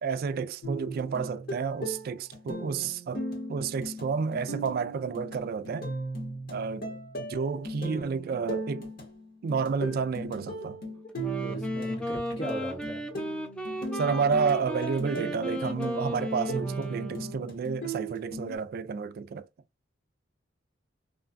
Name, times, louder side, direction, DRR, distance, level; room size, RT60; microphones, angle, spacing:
voice 1, 0.0-5.9 6.5-6.9 7.2-8.9 9.4-10.8 13.9-19.5, right 5 dB, 50° right, 0.3 m, -30 dB
sound 1, 0.6-18.6, right 1 dB, 55° left, 1.2 m, -37 dB
Wind instrument woodwind instrument, 11.1-17.6, equal, 5° left, 0.5 m, -35 dB
voice 2, 11.4-13.0, right 1 dB, 75° left, 1.6 m, -38 dB
3.1 x 2.2 x 2.5 m
head